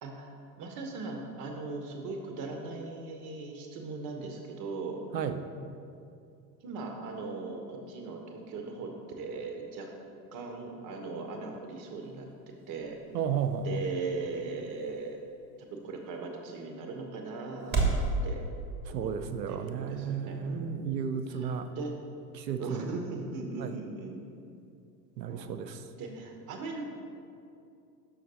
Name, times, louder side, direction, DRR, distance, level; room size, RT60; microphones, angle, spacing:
voice 1, 0.0-5.0 6.6-9.9 10.3-12.3 12.7-13.0 13.6-15.2 15.7-18.4 18.9-19.1 19.5-21.9 22.6-24.3 25.3-25.5 26.0-26.8, right 3 dB, 40° right, 2 dB, 1.0 m, -39 dB
sound 1, 11.8-18.1, right 4 dB, 20° right, 1.4 m, -37 dB
voice 2, 13.1-13.8 18.9-21.7 22.3-22.9 23.6-23.8 25.2-25.8, right 7 dB, 80° right, 9 dB, 0.6 m, -33 dB
6.4 x 5.8 x 4.1 m, 2.5 s
figure-of-eight pair, 85°, 50 cm